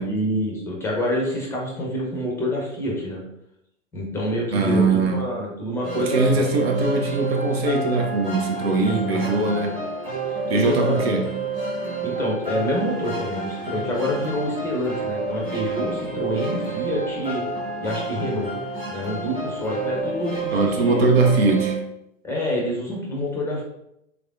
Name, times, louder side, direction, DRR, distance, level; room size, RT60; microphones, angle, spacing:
voice 1, 0.0-3.2 3.9-6.5 8.8-9.9 10.5-11.3 12.0-17.5 17.8-18.5 18.9-21.1 22.2-23.6, equal, 5° left, -3 dB, 0.7 m, -27 dB
voice 2, 4.5-5.3 6.1-9.7 10.5-11.3 20.5-21.8, right 3 dB, 50° right, 3 dB, 0.7 m, -21 dB
sound 1, 5.8-21.7, right 3 dB, 15° right, 1.2 m, -30 dB
3.3 x 3.3 x 2.4 m, 0.81 s
figure-of-eight pair, 105°, 39 cm